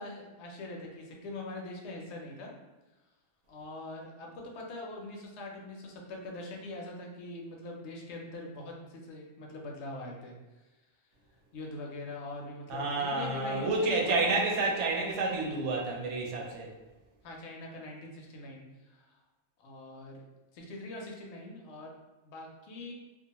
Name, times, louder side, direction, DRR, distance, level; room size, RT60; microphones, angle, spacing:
voice 1, 0.0-2.5 3.5-10.3 11.5-14.3 17.2-19.1 19.6-20.2 20.5-21.9 22.2-22.9, left 2 dB, 70° left, 0 dB, 0.8 m, -42 dB
voice 2, 12.7-16.7, right 3 dB, 75° right, -1 dB, 0.9 m, -29 dB
2.4 x 2.2 x 2.8 m, 1.1 s
omnidirectional pair, 1.2 m